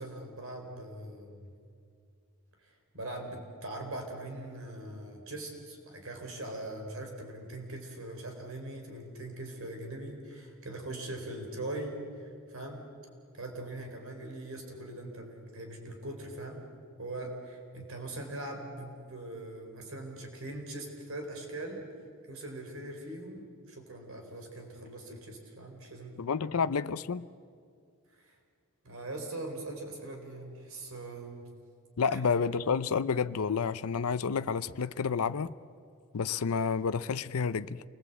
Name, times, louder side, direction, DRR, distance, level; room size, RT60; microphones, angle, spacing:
voice 1, 0.0-1.5 2.6-12.8 13.3-16.6 17.0-21.9 22.3-26.3 28.1-28.4 28.8-31.5 32.1-32.2, right 1 dB, 65° right, 4.1 m, -41 dB
voice 2, 26.2-27.3 32.0-35.6 36.1-37.8, left 5 dB, 80° left, 0.6 m, -30 dB
28.5 x 21.0 x 8.2 m
head